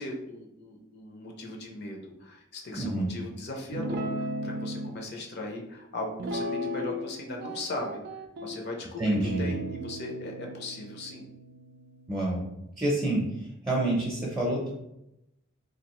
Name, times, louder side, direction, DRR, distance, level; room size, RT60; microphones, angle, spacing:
voice 1, 0.0-8.0 8.4-11.3, left 2 dB, 50° left, 1 dB, 0.5 m, -38 dB
voice 2, 2.7-3.1 9.0-9.5 12.1-12.4 12.8-13.2 13.7-14.7, right 1 dB, 15° right, -5 dB, 0.6 m, -27 dB
Guitar, 3.7-4.9 6.2-7.1 7.4-8.6 9.2-12.6, equal, 50° right, 0.3 m, -36 dB
3.1 x 2.4 x 3.0 m, 0.84 s
head